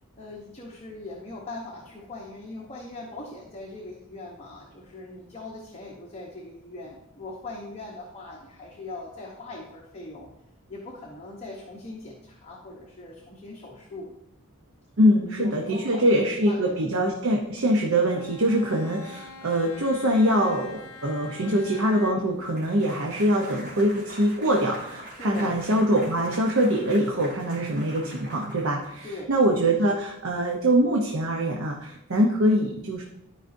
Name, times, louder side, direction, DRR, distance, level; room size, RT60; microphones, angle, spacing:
voice 1, 0.2-10.3 10.7-14.1 15.1-17.4 25.2-25.6 29.0-29.4, left 2 dB, 30° left, -2 dB, 0.9 m, -40 dB
voice 2, 15.0-33.0, equal, 65° right, 1 dB, 0.8 m, -23 dB
Bowed string instrument, 18.0-22.5, left 3 dB, 70° left, 0.7 m, -44 dB
sound 1, 22.4-29.2, right 1 dB, 50° right, 2.7 m, -44 dB
12.5 x 5.0 x 2.7 m, 0.85 s
head